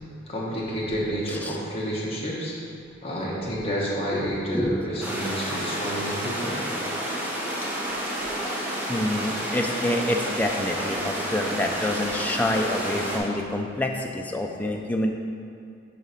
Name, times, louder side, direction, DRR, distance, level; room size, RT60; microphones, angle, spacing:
voice 1, 0.3-2.5 3.0-6.6, equal, 30° left, -5 dB, 1.1 m, -29 dB
sound 1, 5.0-13.2, right 1 dB, 10° right, 0.7 m, -30 dB
voice 2, 8.9-15.1, left 1 dB, 10° left, 1 dB, 0.3 m, -27 dB
4.9 x 4.8 x 4.1 m, 2.4 s
head